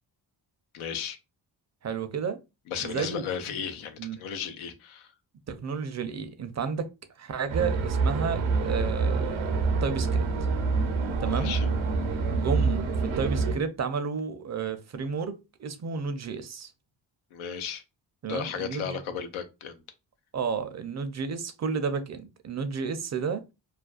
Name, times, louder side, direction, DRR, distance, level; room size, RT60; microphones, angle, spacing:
voice 1, 0.7-1.2 2.7-5.1 11.3-11.7 17.3-17.8 18.3-19.8, left 7 dB, 85° left, 0.6 m, -34 dB
voice 2, 1.8-2.4 2.8-3.2 4.0-4.2 5.5-6.9 7.2-10.3 11.2-11.6 12.3-16.7 18.2-19.0 20.3-23.5, right 6 dB, 35° right, 0.5 m, -32 dB
sound 1, 7.5-13.6, right 4 dB, 75° right, 0.6 m, -26 dB
2.5 x 2.2 x 2.3 m
cardioid pair, 50°, 48 cm